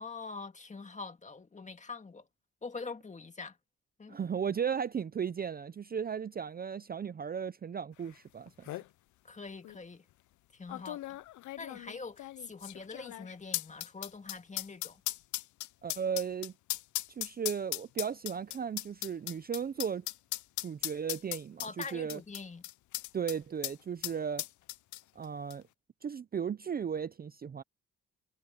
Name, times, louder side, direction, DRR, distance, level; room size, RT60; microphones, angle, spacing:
voice 1, 0.0-2.3 2.6-3.6 4.0-4.2 9.2-10.1 10.5-11.2 11.6-15.0 21.6-22.6, left 4 dB, 25° left, 2.0 m, -44 dB
voice 2, 4.1-8.8 15.8-16.5 17.2-20.1 20.6-21.7 21.9-22.2 23.1-24.4 25.2-25.6 26.0-27.6, right 7 dB, 30° right, 0.6 m, -35 dB
sound 1, 8.1-8.2 8.5-8.9 9.6-9.8 10.7-23.4 23.6-23.8 24.0-25.2 25.5-25.6, left 16 dB, 75° left, 0.6 m, -38 dB
cardioid pair, 90°, 30 cm